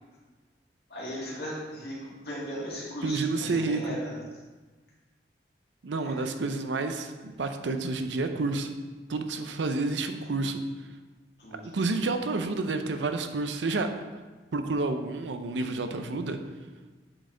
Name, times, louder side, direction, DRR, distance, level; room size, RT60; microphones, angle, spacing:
voice 1, 0.9-4.2 6.0-6.3 11.4-11.7, equal, 65° left, -5 dB, 1.9 m, -37 dB
voice 2, 3.0-3.8 5.8-8.7 9.1-10.6 11.7-13.9 14.5-16.4, right 3 dB, 90° right, 7 dB, 0.6 m, -29 dB
7.8 x 4.2 x 3.8 m, 1.3 s
head